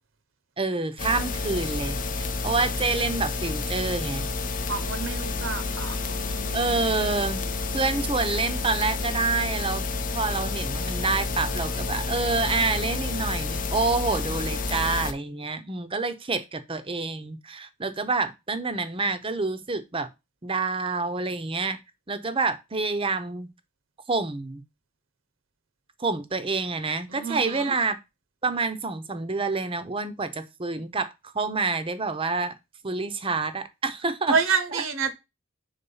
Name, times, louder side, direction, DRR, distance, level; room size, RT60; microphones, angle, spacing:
voice 1, 0.6-4.3 6.5-7.4 7.7-9.8 10.1-20.1 20.4-21.8 22.1-23.5 24.1-24.6 26.0-28.0 28.4-32.5 32.8-34.4 34.7-34.8, right 3 dB, 25° right, 0.7 m, -27 dB
sound 1, 1.0-15.1, left 3 dB, 40° left, 0.6 m, -30 dB
voice 2, 4.7-6.6 27.1-27.7 34.3-35.1, right 5 dB, 65° right, 1.0 m, -28 dB
5.6 x 3.7 x 5.5 m
head